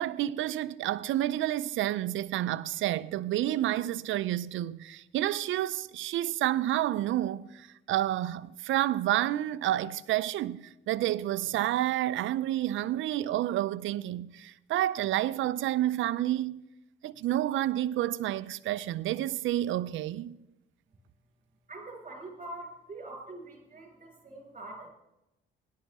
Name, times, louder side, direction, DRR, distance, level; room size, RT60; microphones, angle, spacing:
voice 1, 0.0-16.6 17.0-20.4, right 13 dB, 75° right, 0.5 m, -29 dB
voice 2, 21.7-24.9, right 2 dB, 40° right, 5.8 m, -44 dB
17.5 x 11.5 x 3.6 m
cardioid pair, 90°, 20 cm